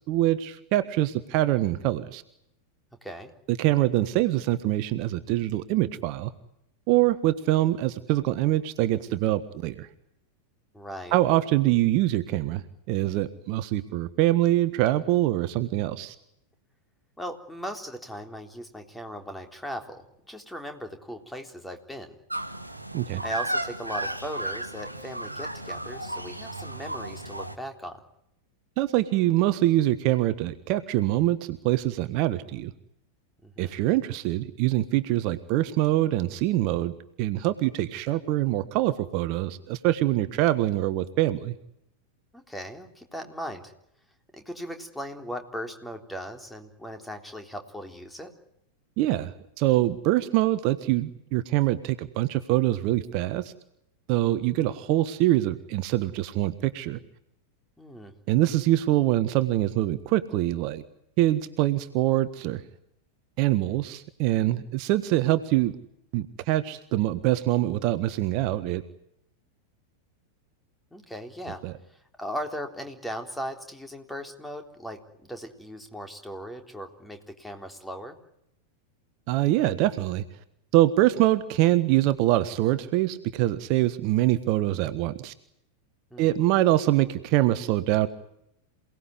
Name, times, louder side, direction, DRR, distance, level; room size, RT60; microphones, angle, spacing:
voice 1, 0.1-2.2 3.5-6.3 6.9-9.9 11.1-12.6 12.9-16.1 22.9-23.2 28.8-32.7 33.6-41.5 49.0-49.3 49.6-53.5 54.1-57.0 58.3-60.8 61.2-62.6 63.4-65.7 66.1-68.8 71.6-71.7 79.3-80.2 80.7-85.3 86.2-88.1, right 15 dB, 45° right, 12 dB, 1.4 m, -24 dB
voice 2, 3.0-3.3 10.7-11.2 17.2-22.2 23.2-28.0 33.4-33.7 42.3-43.7 44.3-48.3 57.8-58.1 70.9-71.6 72.2-78.2 86.1-86.3, equal, 5° left, 5 dB, 3.8 m, -38 dB
sound 1, 22.3-27.6, right 1 dB, 85° right, 1.7 m, -34 dB
28.0 x 19.0 x 9.7 m, 0.78 s
figure-of-eight pair, 90°, 0 cm